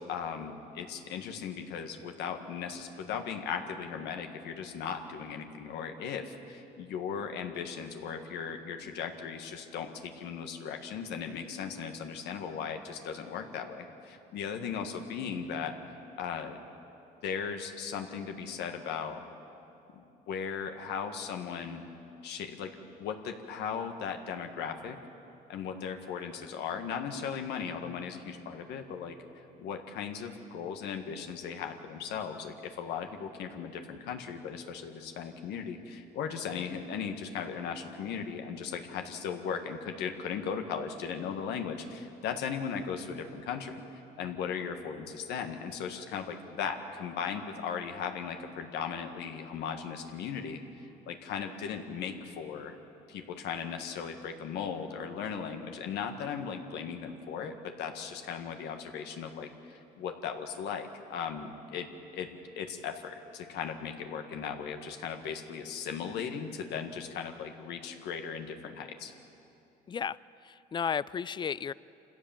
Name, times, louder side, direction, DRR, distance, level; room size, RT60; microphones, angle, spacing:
voice 1, 0.0-15.7 16.2-16.6 17.2-19.2 19.9-21.8 22.2-22.7 23.0-25.0 25.5-29.1 29.6-43.8 44.2-50.6 51.1-52.8 53.1-61.9 62.1-62.3 62.6-69.1, left 7 dB, 80° left, 5 dB, 1.6 m, -37 dB
voice 2, 70.4-71.7, left 7 dB, 25° left, 19 dB, 0.4 m, -33 dB
26.0 x 16.0 x 7.3 m, 2.8 s
cardioid pair, 110°, 17 cm